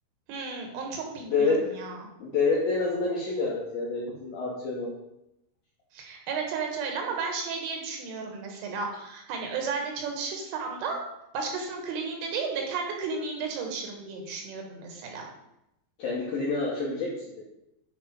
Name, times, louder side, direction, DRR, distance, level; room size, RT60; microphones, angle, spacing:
voice 1, 0.3-2.1 5.9-11.0 11.3-15.3, right 4 dB, 75° right, 2 dB, 3.6 m, -33 dB
voice 2, 1.3-1.7 2.2-4.9 16.0-17.1, left 4 dB, 75° left, -4 dB, 2.2 m, -27 dB
10.5 x 3.6 x 5.1 m, 0.84 s
omnidirectional pair, 6.0 m